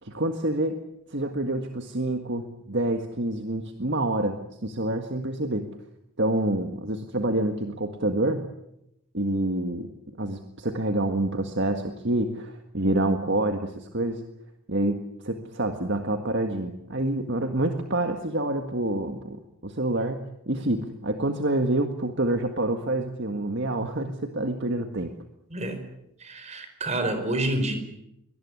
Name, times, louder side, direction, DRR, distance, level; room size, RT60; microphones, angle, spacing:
voice 1, 0.0-0.8 1.1-5.7 6.2-8.5 9.1-9.9 10.2-14.2 14.7-15.0 15.2-25.1, right 1 dB, 50° right, 6 dB, 1.7 m, -27 dB
voice 2, 25.5-25.8 26.2-27.7, right 1 dB, 30° right, 8 dB, 4.7 m, -28 dB
23.5 x 19.0 x 9.7 m, 0.83 s
head